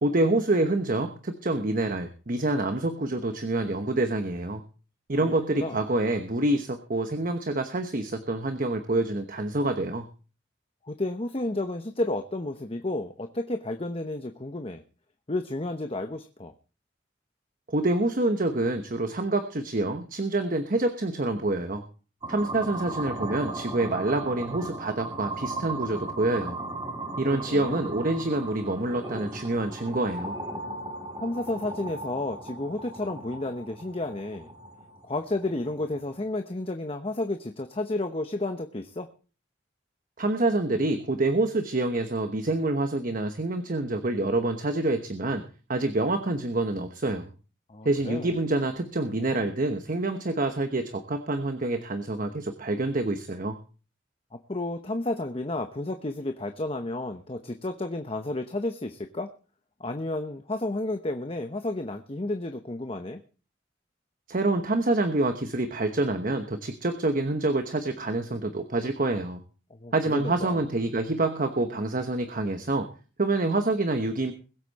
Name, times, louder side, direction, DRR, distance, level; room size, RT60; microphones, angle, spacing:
voice 1, 0.0-4.6 5.1-10.1 17.7-21.8 22.3-26.6 27.2-30.4 40.2-45.4 45.7-47.3 47.8-53.6 64.3-69.4 69.9-72.9 73.2-74.3, right 2 dB, 50° right, 7 dB, 1.1 m, -27 dB
voice 2, 5.2-5.8 10.8-14.8 15.3-16.5 27.1-27.2 27.5-27.8 31.2-34.5 35.0-39.1 47.7-48.3 54.5-59.3 59.8-63.2 69.7-70.6, left 2 dB, 30° left, 6 dB, 0.9 m, -32 dB
sound 1, 22.2-36.2, right 2 dB, 25° right, 5.4 m, -37 dB
21.5 x 8.3 x 4.2 m, 0.37 s
head